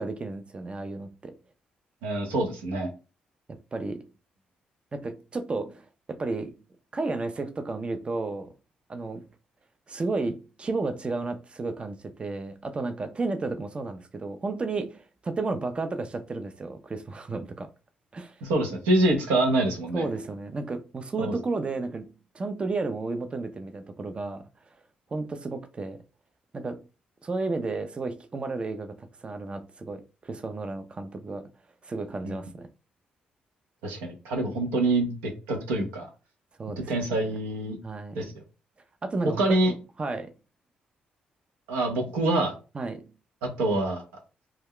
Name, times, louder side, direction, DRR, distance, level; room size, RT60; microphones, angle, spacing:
voice 1, 0.0-1.3 3.5-4.1 4.9-6.6 6.9-8.5 8.9-9.3 9.9-17.7 18.1-18.4 19.9-22.1 22.3-24.5 25.1-26.0 26.5-26.8 27.2-31.5 31.8-32.7 36.6-36.9 37.8-38.3 39.0-40.3 42.7-43.1, right 3 dB, 30° right, 0.4 m, -32 dB
voice 2, 2.0-2.9 18.4-20.1 21.2-21.3 32.2-32.4 33.8-36.1 36.8-37.8 38.1-38.3 39.4-39.7 41.7-42.5 43.4-44.0, right 2 dB, 90° right, 0.7 m, -25 dB
2.3 x 2.1 x 3.6 m
supercardioid pair, 55°, 3 cm